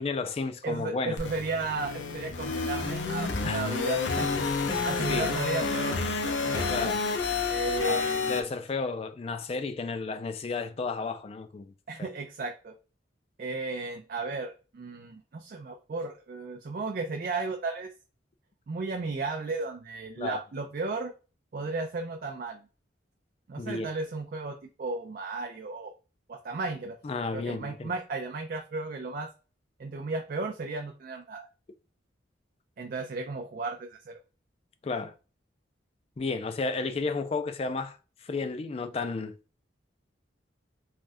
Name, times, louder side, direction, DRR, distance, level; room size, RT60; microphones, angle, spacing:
voice 1, 0.0-1.2 3.4-3.6 4.8-5.3 6.7-7.0 7.8-8.0 8.3-11.7 12.0-12.1 20.2-20.4 23.6-23.9 27.0-27.9 34.8-35.1 36.2-38.0 38.2-39.4, left 4 dB, 35° left, 0.3 m, -32 dB
voice 2, 0.6-4.3 4.6-6.7 7.5-8.4 11.9-12.8 13.4-17.9 18.7-21.1 21.5-22.6 23.5-25.9 26.3-27.0 27.3-29.3 29.8-31.5 32.8-34.2, right 3 dB, 50° right, 0.4 m, -34 dB
sound 1, 1.2-8.4, left 4 dB, 90° left, 0.6 m, -29 dB
3.3 x 2.3 x 2.6 m
head